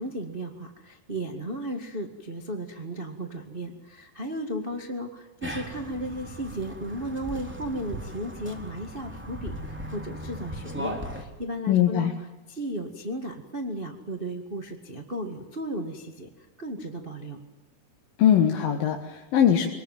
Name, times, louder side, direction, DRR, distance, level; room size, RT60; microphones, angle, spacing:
voice 1, 0.0-12.1 12.5-16.3 16.6-17.4, right 1 dB, 25° right, 3 dB, 1.4 m, -35 dB
sound 1, 5.4-11.2, equal, 5° right, 3.0 m, -37 dB
voice 2, 11.7-12.1 18.2-19.7, left 9 dB, 75° left, 2 dB, 3.4 m, -21 dB
25.0 x 20.0 x 9.3 m, 1.0 s
omnidirectional pair, 4.1 m